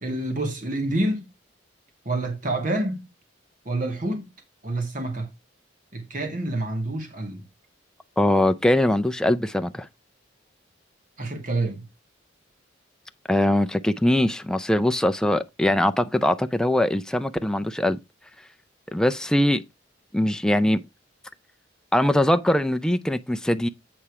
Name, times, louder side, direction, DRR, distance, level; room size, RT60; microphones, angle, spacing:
voice 1, 0.0-1.3 2.1-3.1 3.7-4.3 4.6-5.3 5.9-7.4 11.2-11.8, right 2 dB, 45° right, 2.2 m, -27 dB
voice 2, 8.2-9.9 13.3-18.0 18.9-19.6 20.1-20.8 21.9-23.7, left 1 dB, 5° left, 0.4 m, -22 dB
8.6 x 4.3 x 4.7 m
head